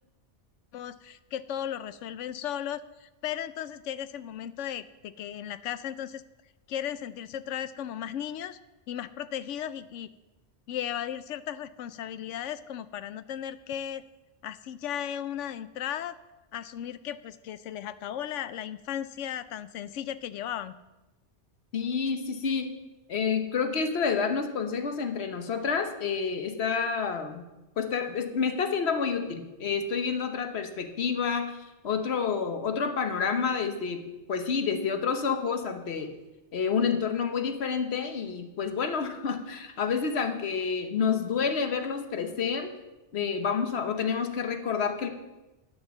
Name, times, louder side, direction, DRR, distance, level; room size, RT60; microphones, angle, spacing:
voice 1, 0.7-6.2 6.7-8.6 8.9-10.1 10.7-14.0 14.4-16.2 16.5-20.7, left 10 dB, 90° left, 14 dB, 0.9 m, -36 dB
voice 2, 21.7-22.8 23.1-27.4 27.8-31.6 31.8-34.0 34.3-36.1 36.5-42.7 43.1-45.1, left 6 dB, 65° left, 6 dB, 1.3 m, -29 dB
10.5 x 6.8 x 7.1 m, 1.0 s
omnidirectional pair, 1.2 m